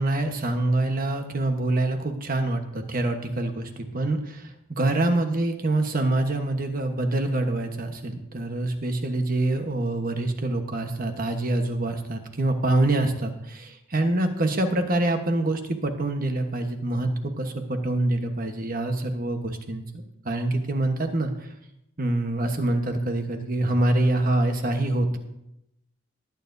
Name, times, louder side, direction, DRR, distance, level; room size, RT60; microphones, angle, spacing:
voice 1, 0.0-19.8 20.2-21.5 22.0-25.2, right 2 dB, 45° right, 6 dB, 1.2 m, -25 dB
19.5 x 9.3 x 2.7 m, 0.83 s
head